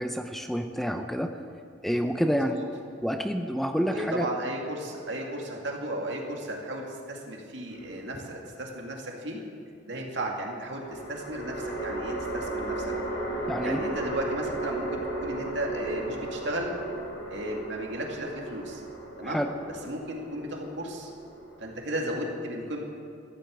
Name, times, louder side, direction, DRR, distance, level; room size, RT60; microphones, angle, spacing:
voice 1, 0.0-1.3 1.8-2.5 3.0-4.3 13.5-13.8 19.2-19.5, equal, ahead, 6 dB, 0.5 m, -28 dB
voice 2, 2.3-2.7 3.8-9.4 9.8-12.9 13.6-16.8 17.3-18.8 19.2-19.5 19.8-21.1 21.6-22.8, right 1 dB, 70° right, 0 dB, 2.2 m, -34 dB
sound 1, 7.7-8.6 10.8-22.2, right 2 dB, 80° left, 3.7 m, -35 dB
14.0 x 8.1 x 8.0 m, 2.4 s
head